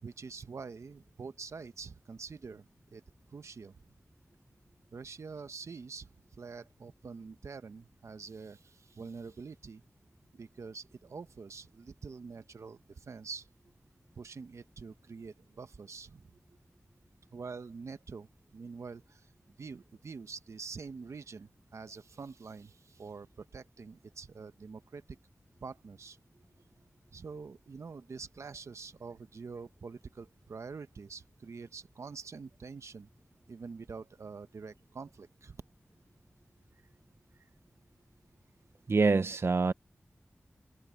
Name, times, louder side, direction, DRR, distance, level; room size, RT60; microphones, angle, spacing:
voice 1, 0.0-3.0 3.3-3.8 4.9-9.8 10.3-13.5 14.1-16.3 17.3-19.3 19.6-25.2 25.6-26.2 27.1-33.1 33.5-35.6, right 5 dB, 90° right, 0.9 m, -46 dB
voice 2, 38.9-39.7, right 4 dB, 60° right, 0.4 m, -25 dB
cardioid pair, 40°, 5 cm